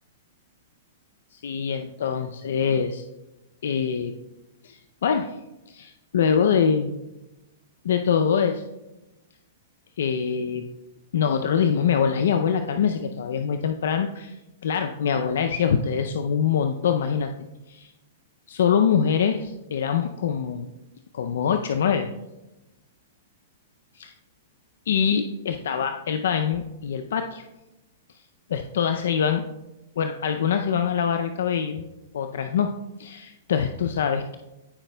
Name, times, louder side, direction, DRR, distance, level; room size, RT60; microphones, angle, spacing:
voice 1, 1.3-3.0 3.6-4.1 4.6-5.3 5.7-6.9 7.8-8.6 10.0-10.7 11.1-14.4 14.6-17.3 17.7-17.9 18.5-20.7 21.1-22.1 23.9-24.1 24.9-27.4 28.5-29.4 30.0-31.9 32.1-32.7 33.0-34.4, left 7 dB, 75° left, 7 dB, 0.4 m, -24 dB
14.5 x 4.9 x 2.2 m, 0.99 s
hypercardioid pair, 135°, 0 cm